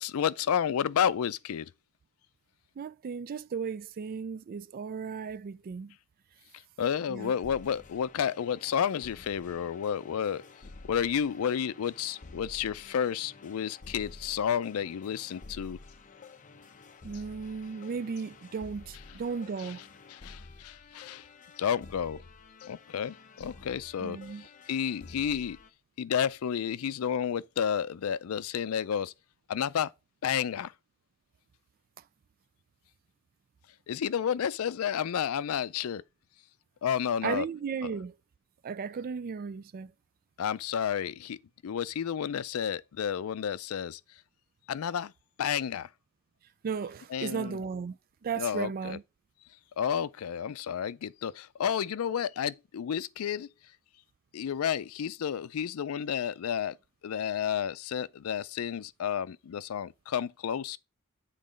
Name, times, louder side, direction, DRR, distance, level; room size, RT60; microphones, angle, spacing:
voice 1, 0.0-1.7 6.8-10.4 10.9-15.8 19.6-19.7 20.1-21.2 21.6-22.2 22.6-25.6 26.0-29.1 29.5-29.9 30.2-30.7 33.9-36.0 36.8-37.5 37.8-37.9 40.4-41.4 41.6-44.0 44.7-45.1 45.4-45.9 47.1-47.6 48.4-49.0 49.8-53.5 54.3-56.8 57.0-60.8, left 8 dB, 80° left, 0.4 m, -31 dB
voice 2, 2.8-5.9 7.1-7.3 17.0-19.8 24.0-24.5 37.2-38.1 38.6-39.9 46.6-48.0 48.2-49.0, right 6 dB, 45° right, 0.3 m, -35 dB
sound 1, 7.2-25.7, left 3 dB, 40° left, 0.7 m, -51 dB
7.5 x 3.9 x 5.1 m
head